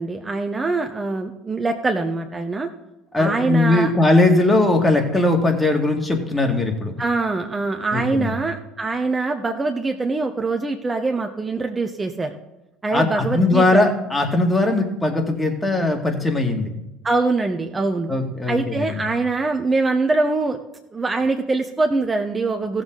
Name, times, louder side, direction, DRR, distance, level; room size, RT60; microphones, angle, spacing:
voice 1, 0.0-2.7 3.2-3.9 7.0-12.3 12.8-13.9 17.0-18.1 18.5-20.6 20.9-22.8, right 3 dB, 20° right, 4 dB, 1.0 m, -23 dB
voice 2, 3.1-7.0 7.9-8.4 12.9-16.7 18.1-19.0, left 2 dB, 15° left, 3 dB, 2.2 m, -19 dB
15.5 x 7.3 x 4.0 m, 0.96 s
hypercardioid pair, 75°, 0 cm